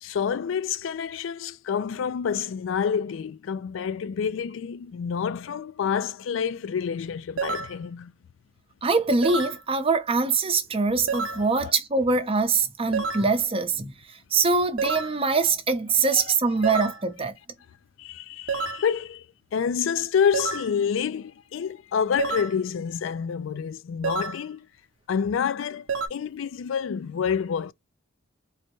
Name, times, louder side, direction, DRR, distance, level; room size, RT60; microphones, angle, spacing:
voice 1, 0.0-8.1 11.3-11.7 16.1-16.2 16.6-16.7 18.0-19.3 19.5-24.7 25.1-27.7, left 7 dB, 65° left, 0.3 m, -28 dB
sound 1, 7.4-7.8 9.2-9.6 11.1-11.5 12.9-13.3 14.8-15.2 16.6-17.0 18.5-18.9 20.3-20.7 22.2-22.6 24.0-24.4 25.9-26.1, right 5 dB, 90° right, 0.7 m, -29 dB
voice 2, 8.8-13.9 14.3-17.3, right 4 dB, 30° right, 0.7 m, -23 dB
4.0 x 2.2 x 2.9 m
head